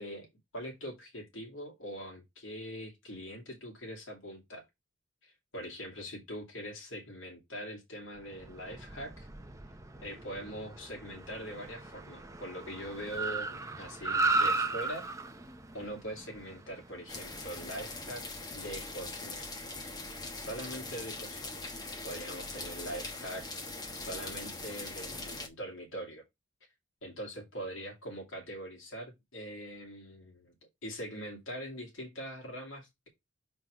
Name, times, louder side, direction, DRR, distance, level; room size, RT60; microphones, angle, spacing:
voice 1, 0.0-4.6 5.2-9.3 10.0-15.1 15.7-18.2 18.5-19.5 20.3-21.6 22.0-23.4 23.9-26.2 27.0-30.5 30.8-33.1, equal, 80° left, 2.3 m, -42 dB
Car, 8.3-17.8, right 3 dB, 15° right, 0.6 m, -36 dB
sound 1, 17.1-25.5, left 2 dB, 20° left, 1.1 m, -41 dB
5.9 x 4.4 x 4.8 m
head